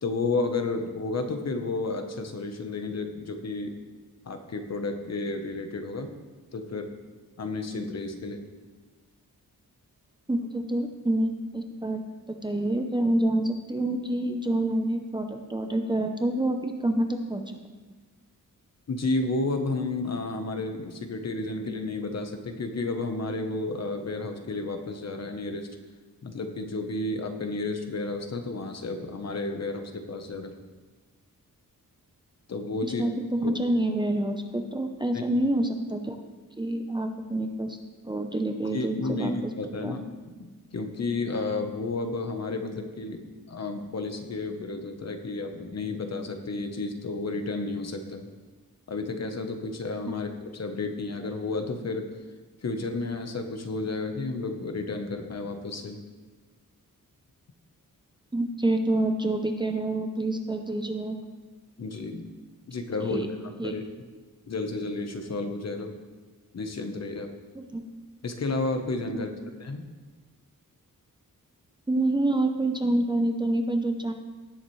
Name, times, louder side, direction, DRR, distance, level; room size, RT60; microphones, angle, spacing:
voice 1, 0.0-3.7 4.3-6.1 6.5-6.9 7.4-8.4 18.9-25.7 26.2-30.5 32.5-33.0 33.4-33.5 35.1-35.2 38.7-40.1 40.4-48.3 48.9-52.1 52.6-56.0 61.8-62.3 62.7-63.8 64.5-65.9 66.5-67.3 68.2-69.3 69.6-69.9, left 3 dB, 50° left, 6 dB, 1.0 m, -32 dB
voice 2, 10.3-12.0 12.3-17.6 32.8-36.2 36.6-37.8 38.0-40.0 58.3-61.2 63.1-63.3 63.6-63.7 67.5-67.8 69.1-69.2 71.9-74.1, right 1 dB, 15° right, 4 dB, 0.6 m, -27 dB
17.5 x 7.2 x 3.2 m, 1.3 s
wide cardioid pair, 170°, 33 cm